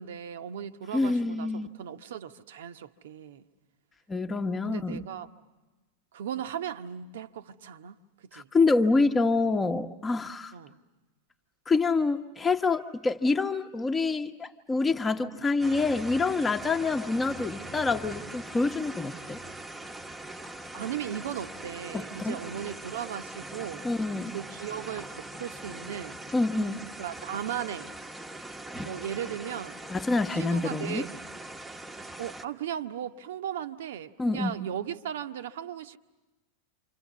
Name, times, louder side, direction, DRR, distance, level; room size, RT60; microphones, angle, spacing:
voice 1, 0.0-3.4 4.6-5.3 6.1-8.5 10.5-10.8 20.7-23.8 24.3-26.2 27.0-27.9 28.8-29.8 30.3-31.1 32.2-36.0, right 10 dB, 60° right, 1.0 m, -37 dB
voice 2, 0.9-1.7 4.1-5.1 8.3-10.5 11.7-19.4 21.9-22.4 23.8-24.3 26.3-26.8 29.9-31.0 34.2-34.6, left 3 dB, 15° left, 1.1 m, -26 dB
sound 1, 15.6-32.4, right 1 dB, 5° right, 1.1 m, -42 dB
28.5 x 26.5 x 7.4 m
figure-of-eight pair, 90°, 0 cm